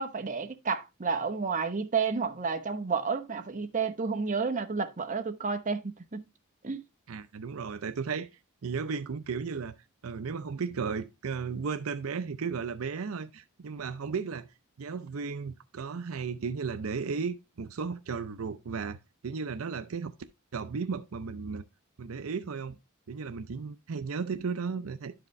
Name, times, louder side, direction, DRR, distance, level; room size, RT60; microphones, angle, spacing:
voice 1, 0.0-6.3 6.6-6.8, right 5 dB, 35° right, 0.9 m, -31 dB
voice 2, 7.1-8.3 8.6-9.7 10.0-14.5 14.8-19.0 19.2-20.1 20.5-21.6 22.0-22.8 23.1-25.1, right 5 dB, 75° right, 0.6 m, -34 dB
11.5 x 5.0 x 3.1 m
head